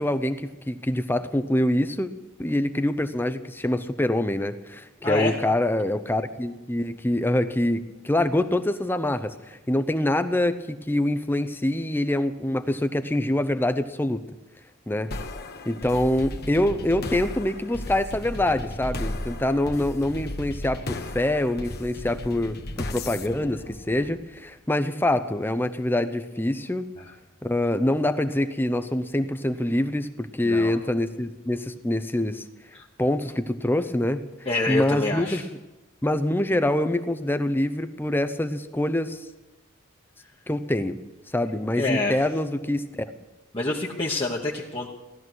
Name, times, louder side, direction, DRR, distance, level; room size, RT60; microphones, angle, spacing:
voice 1, 0.0-2.1 2.4-14.2 14.9-15.1 15.7-26.9 27.4-32.4 33.0-34.2 34.7-35.4 36.0-39.3 40.5-41.0 41.3-42.8, left 1 dB, 10° left, 11 dB, 0.6 m, -25 dB
voice 2, 5.0-5.4 27.0-27.1 30.4-30.7 32.7-32.9 34.4-35.4 41.8-42.1 43.5-44.9, left 2 dB, 25° left, -3 dB, 1.1 m, -27 dB
sound 1, 15.1-24.5, left 1 dB, 45° left, 1.2 m, -35 dB
17.0 x 12.5 x 6.3 m, 1.1 s
head